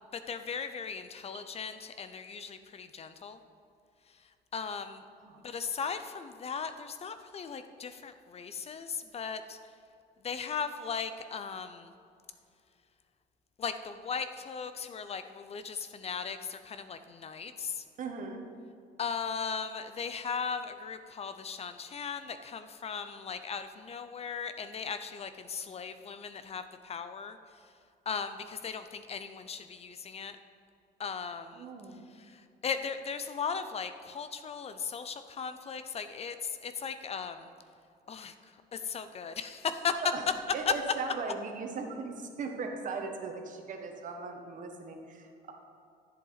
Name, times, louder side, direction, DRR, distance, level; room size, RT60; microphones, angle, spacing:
voice 1, 0.1-3.4 4.5-5.0 5.4-9.6 10.2-11.9 13.6-17.8 19.0-27.4 28.1-30.4 31.0-31.7 32.3-37.5 38.1-38.3 38.7-40.0 40.7-40.8, left 6 dB, 35° left, 10 dB, 0.6 m, -37 dB
voice 2, 18.0-18.5 31.5-32.0 40.0-40.3 40.5-45.5, right 4 dB, 50° right, 3 dB, 1.4 m, -38 dB
14.0 x 7.7 x 4.0 m, 2.5 s
cardioid pair, 110°, 17 cm